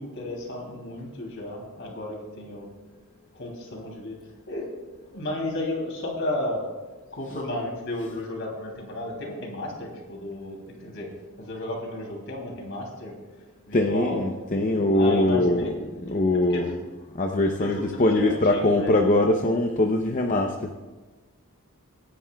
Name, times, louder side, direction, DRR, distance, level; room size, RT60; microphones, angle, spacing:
voice 1, 0.0-2.7 3.3-4.2 4.5-6.6 7.1-11.1 11.4-13.1 13.7-14.2 14.9-15.7 16.5-16.8 17.6-19.0, left 1 dB, 55° left, 0 dB, 3.0 m, -33 dB
voice 2, 13.7-15.7 16.0-16.7 17.2-20.7, left 1 dB, 35° left, 3 dB, 0.7 m, -22 dB
25.0 x 10.5 x 2.3 m, 1.3 s
head